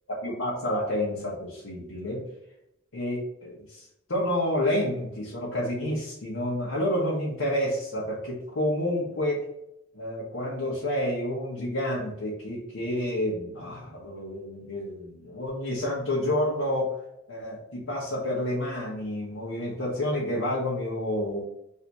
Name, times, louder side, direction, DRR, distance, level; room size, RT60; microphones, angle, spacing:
voice 1, 0.2-2.2 2.9-9.4 9.9-17.0 17.3-21.4, left 1 dB, 75° left, -6 dB, 1.0 m, -29 dB
3.2 x 2.8 x 4.6 m, 0.82 s
head